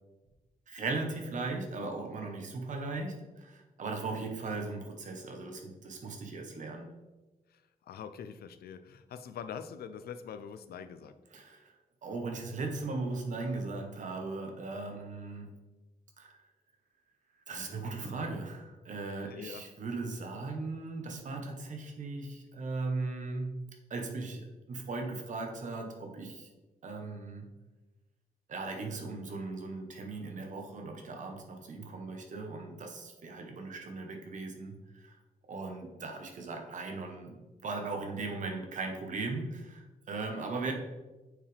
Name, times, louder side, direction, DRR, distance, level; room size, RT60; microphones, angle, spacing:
voice 1, 0.7-6.9 11.3-11.7 12.0-15.5 16.2-16.4 17.5-23.5 23.9-26.5 26.8-27.5 28.5-35.2 35.5-40.7, right 3 dB, 55° right, 3 dB, 1.1 m, -38 dB
voice 2, 7.5-11.1 19.3-19.7, left 7 dB, 85° left, 11 dB, 0.5 m, -44 dB
8.6 x 4.9 x 3.4 m, 1.2 s
wide cardioid pair, 160°, 16 cm